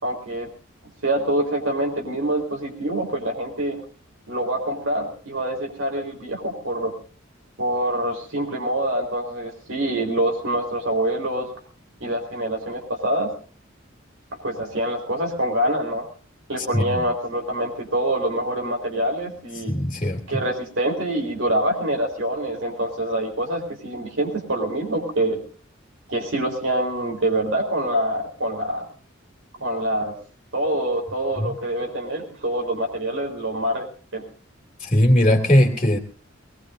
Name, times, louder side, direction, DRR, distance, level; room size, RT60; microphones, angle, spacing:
voice 1, 0.0-0.5 1.0-3.8 4.3-6.9 7.6-11.5 12.0-13.3 14.3-16.1 16.5-19.8 20.3-25.4 26.1-28.8 29.6-30.1 30.5-33.9 34.1-34.2, right 1 dB, 75° right, 1 dB, 4.3 m, -25 dB
voice 2, 19.7-20.2 31.4-31.5 34.8-36.0, equal, 30° left, 0 dB, 2.7 m, -19 dB
21.5 x 20.5 x 2.7 m, 0.40 s
head